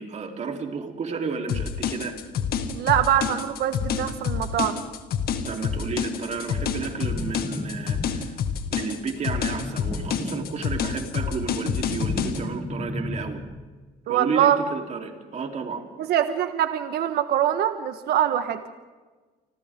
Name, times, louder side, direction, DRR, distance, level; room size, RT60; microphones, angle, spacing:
voice 1, 0.0-2.2 5.5-8.4 8.7-13.4 14.1-15.8, right 5 dB, 45° right, 3 dB, 3.7 m, -32 dB
sound 1, 1.5-12.4, left 7 dB, 65° left, 2.1 m, -28 dB
voice 2, 2.7-4.7 14.1-14.6 16.1-18.6, right 11 dB, 70° right, 8 dB, 1.5 m, -23 dB
sound 2, 6.9-8.5 9.5-11.0 11.4-13.7, left 1 dB, 10° left, 2.8 m, -35 dB
29.5 x 25.5 x 3.8 m, 1.3 s
cardioid pair, 110°, 17 cm